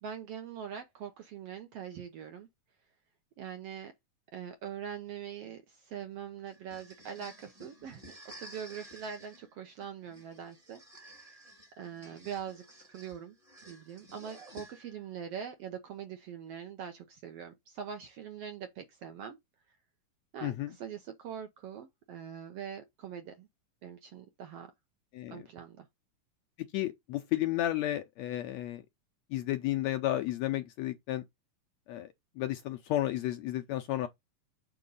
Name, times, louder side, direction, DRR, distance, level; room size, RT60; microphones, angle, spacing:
voice 1, 0.0-2.5 3.4-3.9 4.3-8.0 8.4-10.8 11.1-11.4 11.8-13.3 13.7-19.4 20.3-23.5 23.8-24.7 25.3-25.9, right 8 dB, 70° right, 1.5 m, -43 dB
sound 1, 6.5-15.1, right 1 dB, 20° right, 1.0 m, -53 dB
voice 2, 20.4-20.7 25.1-25.5 26.7-28.8 29.3-31.2 31.9-34.1, left 14 dB, 80° left, 1.6 m, -32 dB
6.9 x 3.7 x 5.3 m
omnidirectional pair, 3.6 m